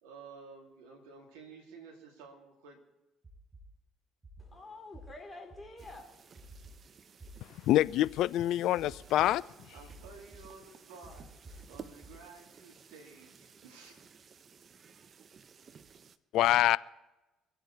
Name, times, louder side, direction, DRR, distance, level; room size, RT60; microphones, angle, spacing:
voice 1, 0.0-2.8 9.2-14.0, right 4 dB, 80° right, 2.6 m, -53 dB
sound 1, 3.2-3.6 4.2-4.5 4.9-5.0 5.5-5.9 6.4-6.7 7.2-7.3 7.8-8.2 8.8-9.3 9.8-10.4 11.0-12.1, right 2 dB, 25° right, 5.8 m, -51 dB
voice 2, 4.4-6.5, left 2 dB, 20° left, 4.0 m, -49 dB
sound 2, 5.8-16.2, right 6 dB, 45° right, 0.8 m, -56 dB
voice 3, 7.6-9.4 16.3-16.8, left 14 dB, 65° left, 0.3 m, -25 dB
24.0 x 8.1 x 4.6 m
hypercardioid pair, 60°, 0 cm